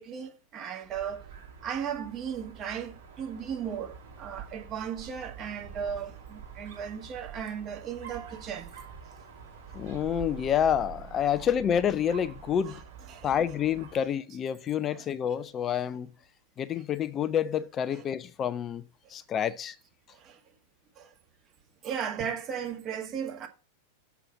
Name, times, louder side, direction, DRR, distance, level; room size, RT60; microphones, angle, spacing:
voice 1, 0.0-1.3 1.6-8.7 12.7-12.8 13.1-13.4 14.9-15.0 17.9-18.0 20.1-20.4 20.9-21.1 21.8-23.5, right 8 dB, 30° right, 1.6 m, -36 dB
Dog, 0.8-14.1, right 7 dB, 60° right, 5.3 m, -46 dB
voice 2, 9.7-12.8 13.2-16.1 16.6-18.8 19.1-19.8, left 9 dB, 25° left, 0.6 m, -28 dB
7.1 x 5.7 x 7.1 m
figure-of-eight pair, 90°, 0 cm